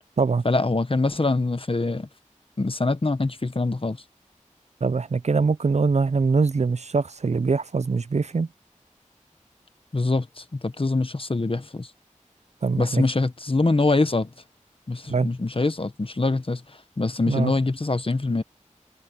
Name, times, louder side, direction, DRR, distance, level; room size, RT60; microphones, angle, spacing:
voice 1, 0.4-2.1 2.6-4.0 9.9-11.9 12.8-14.3 14.9-16.6 17.0-18.4, left 3 dB, 45° left, 1.1 m, -24 dB
voice 2, 4.8-8.5 12.6-13.0 15.1-15.3 17.3-17.5, right 4 dB, 60° right, 0.5 m, -23 dB
wide cardioid pair, 55°, 13 cm